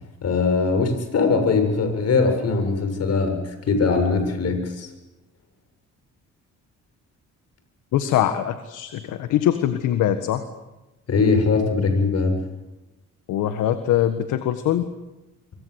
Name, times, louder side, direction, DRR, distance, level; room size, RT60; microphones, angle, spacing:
voice 1, 0.2-4.9 11.1-12.5, left 4 dB, 55° left, 6 dB, 7.3 m, -21 dB
voice 2, 7.9-10.4 13.3-14.9, left 11 dB, 90° left, 9 dB, 1.7 m, -22 dB
26.5 x 23.5 x 8.2 m, 1.0 s
cardioid pair, 90°, 30 cm